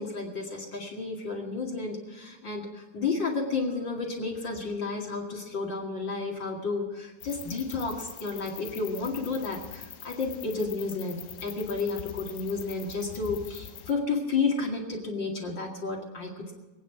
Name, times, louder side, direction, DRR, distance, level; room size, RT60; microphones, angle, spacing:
voice 1, 0.0-16.5, left 4 dB, 40° left, -1 dB, 1.7 m, -31 dB
sound 1, 7.2-13.9, left 10 dB, 75° left, 2.1 m, -44 dB
27.0 x 9.3 x 4.7 m, 1.2 s
omnidirectional pair, 5.4 m